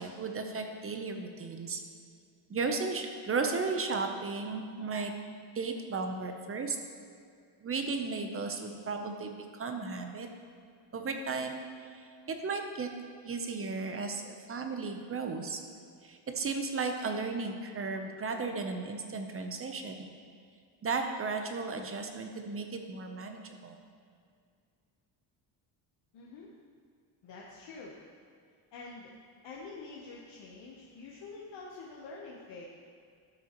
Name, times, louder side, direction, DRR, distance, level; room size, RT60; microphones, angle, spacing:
voice 1, 0.0-1.8 2.5-5.1 5.5-6.8 7.6-10.3 10.9-12.9 13.2-14.2 14.5-15.6 16.0-20.1 20.8-23.8, right 4 dB, 30° right, 5 dB, 0.7 m, -35 dB
voice 2, 26.1-26.5 27.2-28.0 28.7-29.1 29.4-32.7, left 3 dB, 70° left, -3 dB, 1.0 m, -46 dB
12.5 x 6.1 x 3.0 m, 2.3 s
cardioid pair, 135°, 44 cm